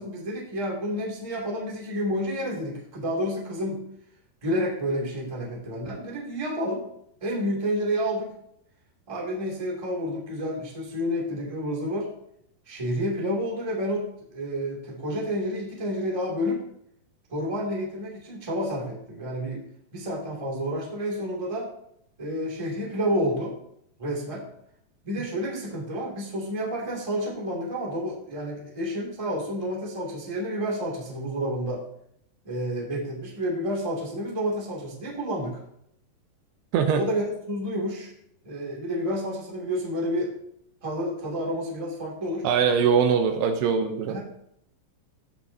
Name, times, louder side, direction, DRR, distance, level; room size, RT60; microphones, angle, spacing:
voice 1, 0.0-3.8 4.4-6.8 7.2-8.3 9.1-12.1 12.6-16.6 17.3-19.6 19.9-21.7 22.2-23.6 24.0-24.5 25.0-31.8 32.4-35.6 36.9-38.1 38.4-40.3 40.8-42.5 44.0-44.2, equal, 10° right, -3 dB, 1.6 m, -30 dB
voice 2, 42.4-44.2, right 6 dB, 80° right, 5 dB, 2.7 m, -22 dB
16.0 x 6.1 x 2.8 m, 0.74 s
omnidirectional pair, 4.9 m